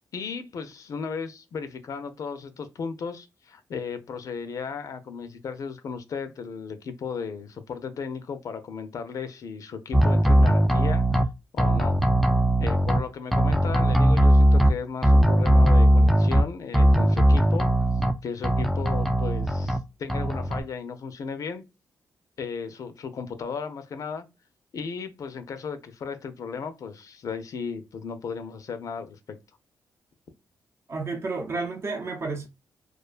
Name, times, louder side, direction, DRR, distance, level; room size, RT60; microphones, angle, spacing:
voice 1, 0.1-11.3 11.5-12.0 12.6-17.9 18.2-21.6 22.4-24.3 24.7-29.4, left 5 dB, 65° left, 0.5 m, -35 dB
sound 1, 9.9-11.2 11.6-13.0 13.3-14.7 15.0-16.4 16.7-18.1 18.4-19.8 20.1-20.6, equal, ahead, 0.3 m, -19 dB
voice 2, 30.9-32.5, right 3 dB, 45° right, 0.7 m, -31 dB
2.4 x 2.2 x 2.3 m
cardioid pair, 80°, 6 cm